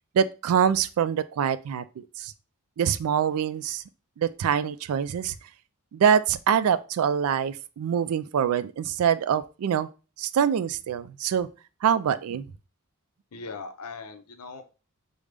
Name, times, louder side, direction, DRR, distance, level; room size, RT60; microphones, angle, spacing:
voice 1, 0.1-2.3 2.8-3.8 4.2-5.3 5.9-9.9 10.2-11.5 11.8-12.5, right 8 dB, 75° right, 0.3 m, -25 dB
voice 2, 13.3-14.6, left 4 dB, 80° left, 0.6 m, -39 dB
5.0 x 2.1 x 3.3 m
head